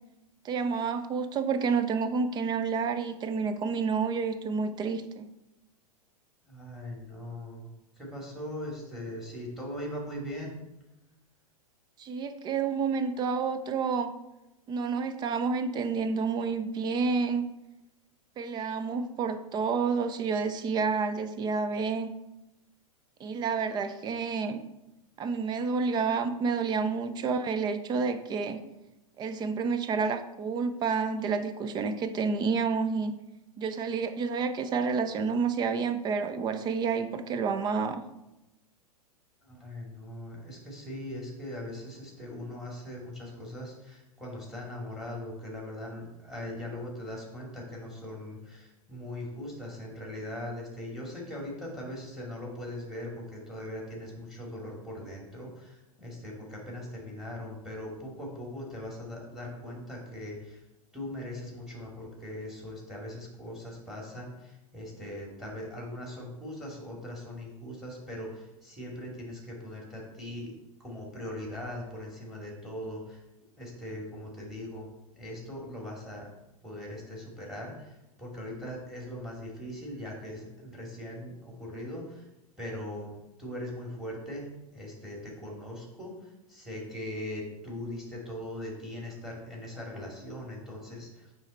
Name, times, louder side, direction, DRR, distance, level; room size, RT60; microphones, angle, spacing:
voice 1, 0.4-5.3 12.0-14.1 14.7-17.5 18.4-22.1 23.2-24.6 25.2-28.6 29.2-33.1 33.6-38.0, right 5 dB, 20° right, 10 dB, 0.5 m, -29 dB
voice 2, 6.5-7.7 8.0-10.6 39.5-60.6 60.9-70.5 70.8-73.2 73.6-74.8 75.2-76.3 76.6-77.9 78.2-82.2 82.6-86.1 86.5-91.3, left 1 dB, ahead, -2 dB, 2.3 m, -40 dB
9.0 x 3.3 x 4.3 m, 0.95 s
figure-of-eight pair, 100°, 19 cm